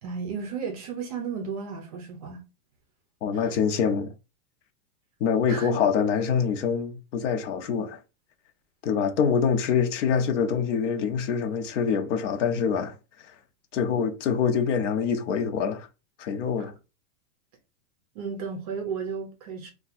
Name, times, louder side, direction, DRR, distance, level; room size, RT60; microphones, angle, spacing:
voice 1, 0.0-2.4 3.3-3.6 5.5-5.8 16.6-16.7 18.1-19.7, right 6 dB, 30° right, 0.5 m, -34 dB
voice 2, 3.2-4.1 5.2-8.0 8.8-12.9 13.7-15.9 16.2-16.7, left 6 dB, 60° left, 0.8 m, -25 dB
2.7 x 2.3 x 4.1 m
supercardioid pair, 165°, 42 cm